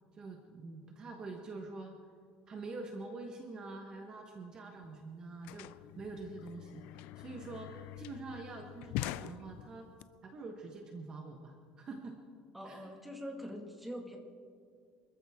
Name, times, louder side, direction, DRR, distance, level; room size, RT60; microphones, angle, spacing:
voice 1, 0.1-2.0 2.5-9.9 10.2-12.2 12.6-12.9, right 3 dB, 25° right, 3 dB, 1.2 m, -46 dB
sound 1, 4.5-4.6 4.8-10.0, left 15 dB, 65° left, 0.4 m, -44 dB
voice 2, 12.5-14.2, equal, 5° right, 1 dB, 1.9 m, -43 dB
25.5 x 14.5 x 3.6 m, 2.2 s
cardioid pair, 160°, 3 cm